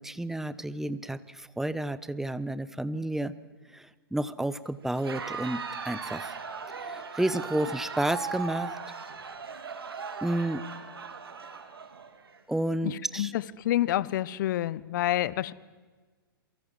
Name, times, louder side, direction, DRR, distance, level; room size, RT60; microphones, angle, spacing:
voice 1, 0.0-3.3 3.7-6.3 6.7-8.8 10.2-10.6 12.5-13.3, right 1 dB, 5° right, 1.0 m, -31 dB
Crowd, 4.9-12.4, right 5 dB, 80° right, 3.2 m, -38 dB
voice 2, 12.8-15.5, left 13 dB, 55° left, 1.0 m, -28 dB
28.0 x 23.5 x 7.5 m
hypercardioid pair, 120°, 12 cm